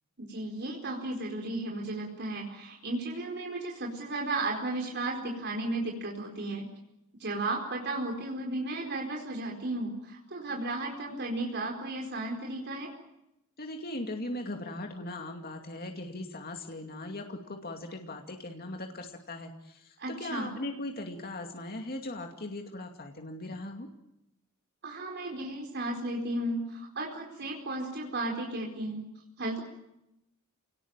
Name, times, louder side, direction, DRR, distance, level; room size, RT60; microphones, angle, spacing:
voice 1, 0.2-6.7 7.2-12.9 20.0-20.5 24.8-29.0 29.4-29.6, right 2 dB, 50° right, 0 dB, 4.5 m, -34 dB
voice 2, 13.6-23.9, left 1 dB, 45° left, 3 dB, 2.5 m, -39 dB
28.5 x 19.5 x 9.0 m, 0.86 s
head